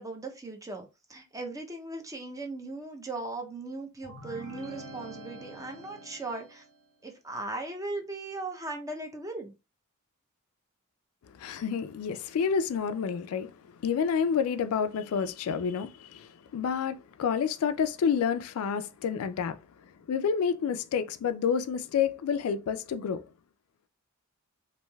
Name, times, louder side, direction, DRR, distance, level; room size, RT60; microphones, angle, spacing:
voice 1, 0.0-6.6 7.0-9.5, right 2 dB, 15° right, 0.5 m, -38 dB
sound 1, 4.0-6.8, right 1 dB, 85° right, 0.8 m, -46 dB
voice 2, 11.3-13.5 13.8-19.6 20.1-23.2, left 6 dB, 85° left, 0.3 m, -29 dB
3.1 x 2.6 x 2.2 m
head